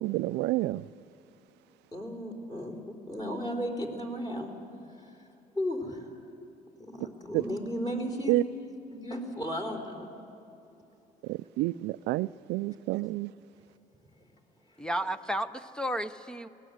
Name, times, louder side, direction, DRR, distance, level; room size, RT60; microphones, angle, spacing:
voice 1, 0.0-0.8 7.3-7.4 8.3-8.4 11.3-13.3, right 18 dB, 85° right, 0.4 m, -29 dB
voice 2, 1.9-2.7 3.1-4.5 5.0-5.1 5.6-6.1 6.8-8.4 8.9-10.1, equal, 25° left, 3.9 m, -34 dB
voice 3, 14.8-16.5, right 1 dB, 5° left, 0.6 m, -32 dB
23.5 x 19.5 x 8.0 m
cardioid pair, 110°, 17 cm